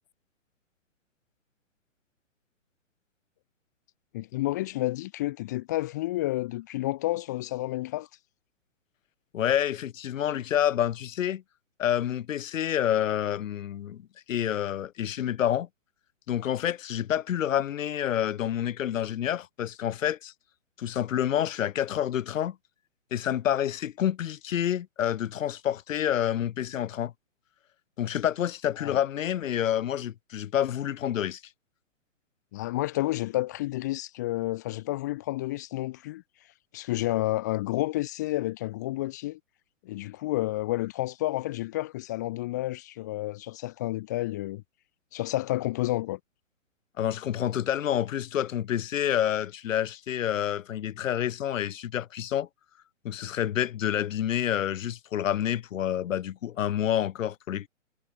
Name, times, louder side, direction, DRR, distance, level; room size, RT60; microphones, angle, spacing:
voice 1, 4.1-8.1 28.8-29.0 32.5-36.2 36.7-39.4 39.8-44.6 45.1-46.2, left 17 dB, 15° left, 0.5 m, -30 dB
voice 2, 9.3-11.4 11.8-15.7 16.3-20.3 20.8-22.6 23.1-27.1 28.0-31.4 47.0-52.5 53.0-57.7, left 10 dB, 80° left, 0.7 m, -28 dB
hypercardioid pair, 145°, 39 cm